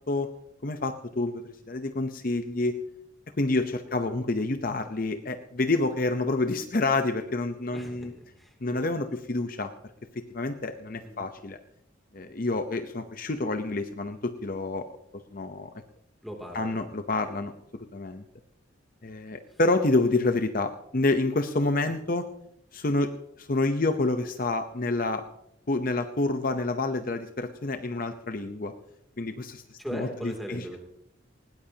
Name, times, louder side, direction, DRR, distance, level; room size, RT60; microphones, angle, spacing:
voice 1, 0.6-1.4 1.7-2.8 3.4-8.1 8.6-9.7 10.3-11.6 12.1-14.9 15.3-15.7 16.5-17.5 17.9-18.2 19.0-22.3 22.7-23.1 23.4-25.2 25.7-28.7 29.2-30.6, left 2 dB, 45° left, 8 dB, 0.8 m, -28 dB
voice 2, 7.7-8.9 11.0-11.3 16.2-16.8 17.3-17.4 19.5-19.6 29.8-30.8, equal, ahead, 1 dB, 2.7 m, -39 dB
20.0 x 18.0 x 2.9 m, 0.75 s
head